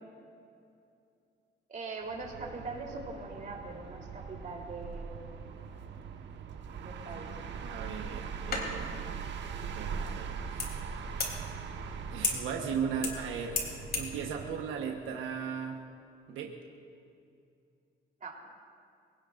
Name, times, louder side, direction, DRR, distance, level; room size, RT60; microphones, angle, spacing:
voice 1, 1.7-5.2 6.8-7.4 18.2-18.4, right 3 dB, 40° right, -1 dB, 3.7 m, -41 dB
sound 1, 2.0-14.7, right 6 dB, 65° right, 1.3 m, -41 dB
voice 2, 7.6-9.2 9.7-11.0 12.1-15.8 16.3-16.5, right 6 dB, 90° right, 1 dB, 1.2 m, -37 dB
sound 2, 8.0-14.2, left 4 dB, 50° left, 3.5 m, -38 dB
26.5 x 18.0 x 2.6 m, 2.5 s
cardioid pair, 90°, 20 cm